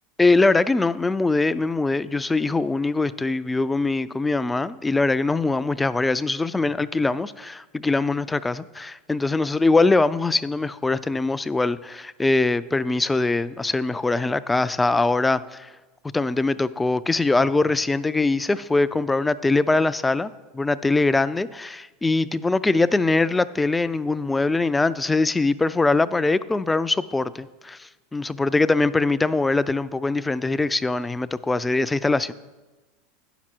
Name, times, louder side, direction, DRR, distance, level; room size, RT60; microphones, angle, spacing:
voice 1, 0.2-15.7 16.1-32.3, left 3 dB, 10° left, 15 dB, 0.4 m, -22 dB
10.0 x 6.1 x 4.4 m, 1.2 s
hypercardioid pair, 95°, 0 cm